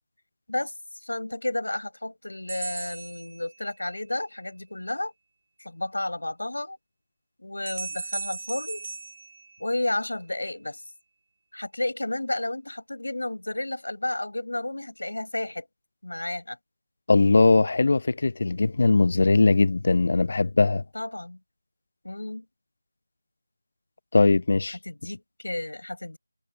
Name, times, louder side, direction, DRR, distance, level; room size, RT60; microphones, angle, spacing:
voice 1, 1.0-5.1 5.6-6.8 7.4-8.9 9.6-10.8 11.5-15.7 16.0-16.6 20.9-21.4 22.0-22.5 24.7-26.2, left 1 dB, 85° left, 6.8 m, -32 dB
sound 1, 2.5-4.0 7.7-10.2, right 4 dB, 30° right, 1.9 m, -38 dB
voice 2, 17.1-20.8 24.1-24.8, left 3 dB, 45° left, 0.4 m, -20 dB
figure-of-eight pair, 175°, 0 cm